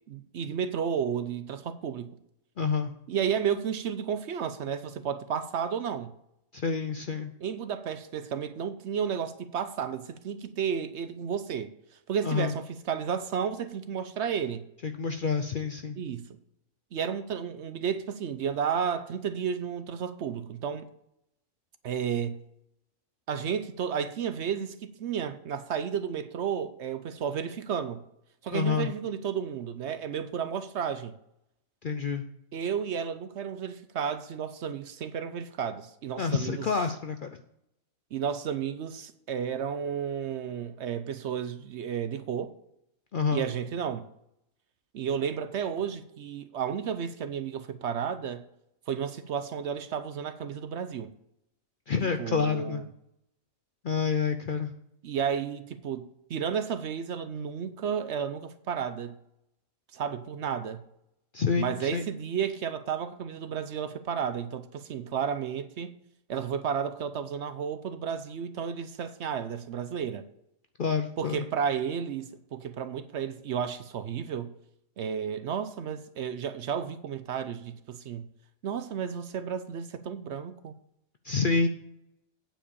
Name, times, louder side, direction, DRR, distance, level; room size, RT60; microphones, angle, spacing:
voice 1, 0.0-2.1 3.1-6.1 7.4-11.7 12.1-14.6 16.0-16.3 16.9-20.9 21.8-22.4 23.3-28.0 28.4-31.1 32.5-36.7 38.1-42.5 43.3-44.0 44.9-48.4 48.9-51.1 52.2-52.8 55.0-59.2 59.9-60.8 61.6-65.9 66.3-70.3 71.2-74.5 75.0-78.3 78.6-80.7, right 7 dB, 65° right, 0.8 m, -32 dB
voice 2, 2.6-2.9 6.5-7.3 12.2-12.5 14.8-16.0 28.5-28.9 31.8-32.2 36.2-37.3 43.1-43.5 51.9-52.8 53.8-54.7 61.3-62.0 70.8-71.4 81.2-81.7, left 5 dB, 55° left, 0.6 m, -28 dB
9.0 x 5.0 x 6.9 m
omnidirectional pair, 1.4 m